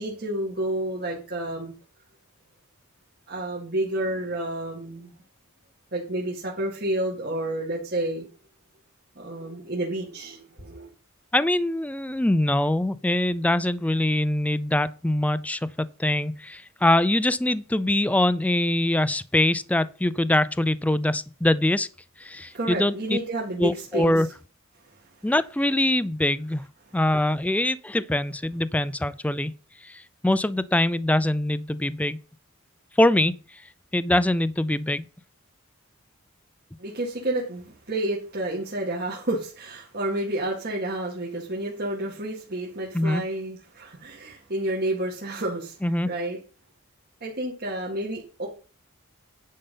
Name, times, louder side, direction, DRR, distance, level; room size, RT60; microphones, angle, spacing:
voice 1, 0.0-1.7 3.3-5.1 5.9-8.2 9.2-10.9 22.3-24.1 25.0-25.1 36.8-46.4 47.2-48.5, right 1 dB, 50° right, 2.1 m, -30 dB
voice 2, 11.3-21.9 22.2-23.2 23.6-24.3 25.2-26.6 26.9-29.5 29.8-32.2 33.0-33.3 33.9-35.1 42.9-43.2 45.8-46.1, left 1 dB, 5° left, 0.4 m, -23 dB
10.0 x 5.4 x 5.5 m
head